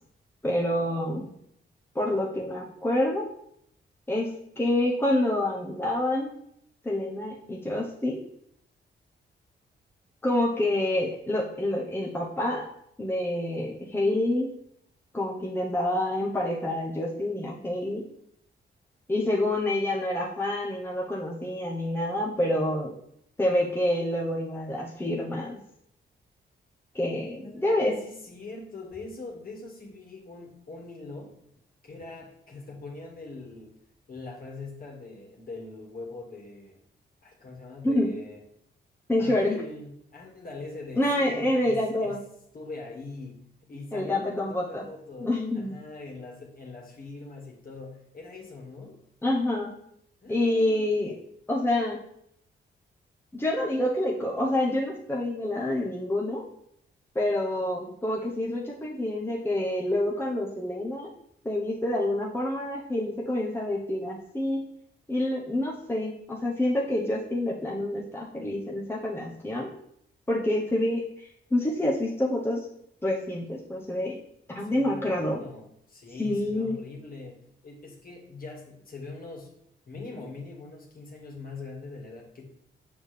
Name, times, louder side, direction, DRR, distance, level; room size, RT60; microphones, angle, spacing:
voice 1, 0.4-1.3 1.9-3.2 4.1-4.3 4.6-6.3 6.8-8.2 10.2-12.6 13.0-14.5 15.1-18.0 19.1-22.9 23.4-25.6 26.9-27.9 37.8-38.1 39.1-39.6 41.0-42.2 43.9-44.8 45.2-45.8 49.2-49.7 50.3-51.2 51.5-52.0 53.3-56.4 57.1-61.1 61.4-64.6 65.1-69.7 70.3-72.6 73.0-74.2 74.5-75.4 76.2-76.8, left 1 dB, 10° left, -3 dB, 1.0 m, -27 dB
voice 2, 27.4-31.3 31.8-33.7 34.1-36.8 37.2-38.4 39.2-42.2 42.5-49.0 50.2-51.0 74.5-79.5 79.9-82.5, left 3 dB, 50° left, -1 dB, 2.0 m, -42 dB
7.0 x 6.2 x 3.4 m, 0.73 s
cardioid pair, 100°, 19 cm